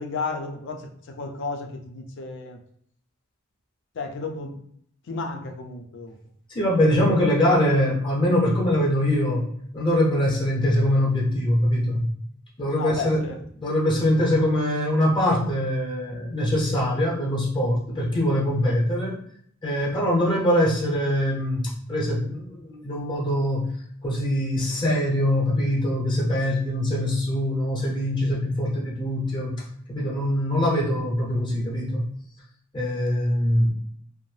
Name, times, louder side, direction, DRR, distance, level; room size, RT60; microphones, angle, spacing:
voice 1, 0.0-2.6 4.0-4.6 5.1-6.1 12.8-13.4, left 3 dB, 60° left, 4 dB, 0.4 m, -33 dB
voice 2, 6.5-12.1 12.6-13.2 13.6-19.1 19.6-29.6 29.9-32.1 32.7-33.7, left 1 dB, 20° left, -3 dB, 0.7 m, -23 dB
2.6 x 2.0 x 3.1 m, 0.64 s
head